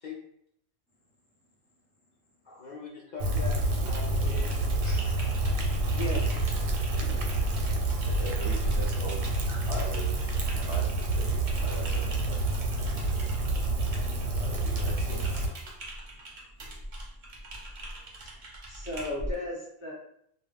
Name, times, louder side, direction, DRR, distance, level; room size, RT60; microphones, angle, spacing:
voice 1, 2.6-3.5 3.9-4.6 10.3-10.7, left 4 dB, 70° left, -3 dB, 0.4 m, -42 dB
Rain, 3.2-15.5, right 2 dB, 85° right, 1.0 m, -28 dB
Typing, 3.7-19.3, right 1 dB, 50° right, 0.6 m, -41 dB
voice 2, 4.8-5.2 6.9-7.4 8.0-9.2 9.6-10.3 10.6-10.9 11.1-12.6 14.2-15.4 15.9-16.0, equal, ahead, -9 dB, 0.4 m, -41 dB
voice 3, 5.9-6.3 18.7-19.9, left 1 dB, 25° left, -4 dB, 0.8 m, -36 dB
2.2 x 2.0 x 3.3 m, 0.72 s
omnidirectional pair, 1.3 m